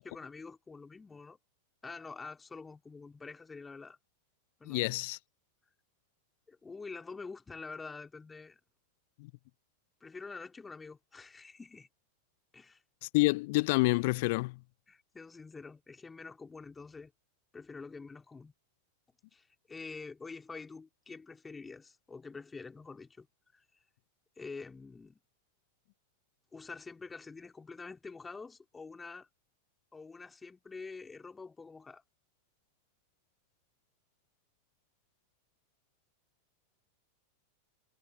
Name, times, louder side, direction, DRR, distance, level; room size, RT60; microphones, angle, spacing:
voice 1, 0.0-1.4 1.8-4.0 4.6-4.8 6.5-8.6 10.0-11.9 12.5-12.8 14.9-17.1 17.5-18.5 19.3-23.3 23.5-23.6 24.4-25.2 26.5-29.3 29.9-32.0, left 4 dB, 15° left, 3.0 m, -47 dB
voice 2, 4.6-5.2 9.2-9.3 13.0-14.6, left 24 dB, 50° left, 0.5 m, -28 dB
figure-of-eight pair, 90°, 0 cm